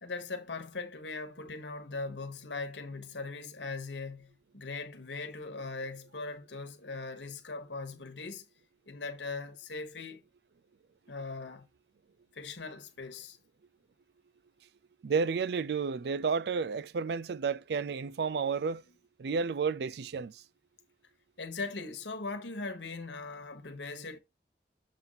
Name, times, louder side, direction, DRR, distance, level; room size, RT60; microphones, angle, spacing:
voice 1, 0.0-8.4 8.9-10.2 11.1-11.7 12.3-13.4 21.4-24.2, left 3 dB, 80° left, 1.3 m, -40 dB
voice 2, 15.0-18.8 19.2-20.4, right 5 dB, 65° right, 0.4 m, -31 dB
7.2 x 2.5 x 5.7 m
head